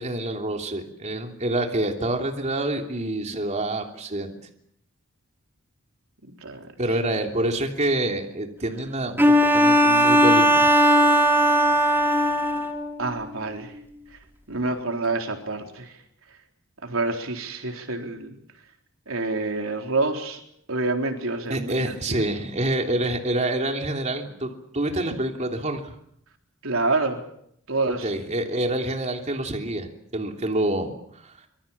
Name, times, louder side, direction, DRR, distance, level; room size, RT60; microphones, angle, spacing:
voice 1, 0.0-4.3 6.8-10.7 21.5-26.0 28.0-31.3, right 1 dB, 35° right, 3 dB, 3.2 m, -27 dB
Bowed string instrument, 9.2-12.9, equal, 10° right, 3.0 m, -18 dB
voice 2, 13.0-13.7 14.5-15.9 16.8-18.3 19.1-20.4 20.7-21.7 22.1-22.3 26.6-27.2 27.7-28.1, right 3 dB, 85° right, 3 dB, 3.9 m, -27 dB
25.5 x 24.0 x 7.3 m, 0.71 s
head